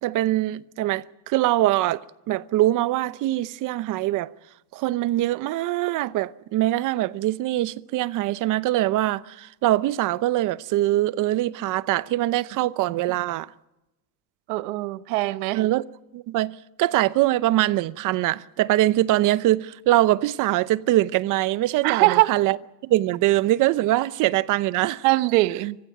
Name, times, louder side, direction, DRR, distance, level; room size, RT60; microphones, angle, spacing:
voice 1, 0.0-4.3 4.7-13.5 15.6-15.8 16.1-22.6 22.8-25.1, right 15 dB, 45° right, 0.8 m, -23 dB
voice 2, 14.5-15.6 21.8-22.3 25.0-25.8, right 20 dB, 85° right, 1.0 m, -21 dB
25.5 x 15.5 x 9.2 m
cardioid pair, 145°, 42 cm